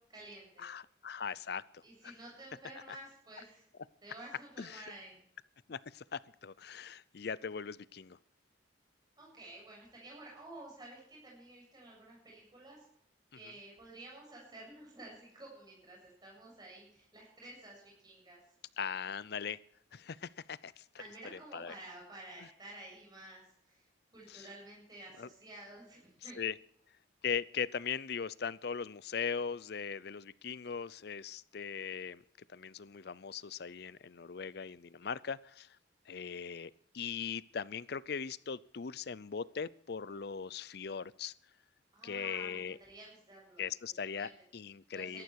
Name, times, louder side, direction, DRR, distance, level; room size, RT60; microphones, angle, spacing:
voice 1, 0.1-0.7 1.8-3.6 4.0-5.2 9.2-12.9 13.3-18.4 21.0-23.9 24.1-26.4 41.9-44.3 44.9-45.2, right 1 dB, 20° right, -3 dB, 7.7 m, -52 dB
voice 2, 0.6-1.6 2.9-3.0 4.6-4.8 5.7-8.2 18.8-19.6 19.9-20.7 21.5-21.7 24.3-24.4 25.2-25.3 26.4-26.5 27.2-32.2 32.5-35.7 36.1-41.3 42.0-42.8 43.6-45.2, left 6 dB, 55° left, 20 dB, 0.5 m, -39 dB
18.5 x 14.0 x 4.7 m, 0.66 s
head